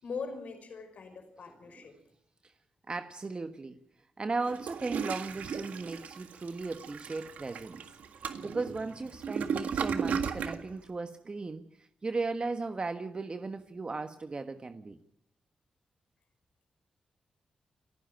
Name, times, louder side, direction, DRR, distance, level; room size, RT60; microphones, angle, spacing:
voice 1, 0.0-1.9, left 5 dB, 70° left, 8 dB, 5.4 m, -41 dB
voice 2, 2.9-3.8 4.2-7.8 8.4-15.0, right 3 dB, 40° right, 8 dB, 1.4 m, -36 dB
Toilet flush, 4.4-10.6, right 6 dB, 85° right, 1.8 m, -35 dB
30.0 x 10.5 x 9.1 m, 0.75 s
cardioid pair, 50°, 2 cm